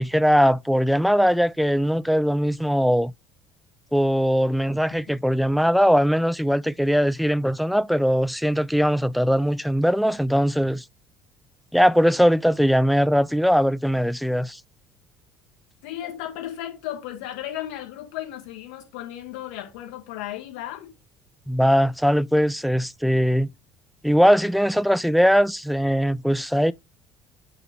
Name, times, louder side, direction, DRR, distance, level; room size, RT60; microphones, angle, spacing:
voice 1, 0.0-3.1 3.9-10.8 11.7-14.6 21.5-23.5 24.0-26.7, equal, ahead, 0.4 m, -20 dB
voice 2, 15.8-20.9, left 12 dB, 70° left, 1.8 m, -35 dB
8.1 x 2.9 x 4.5 m
figure-of-eight pair, 60°, 8 cm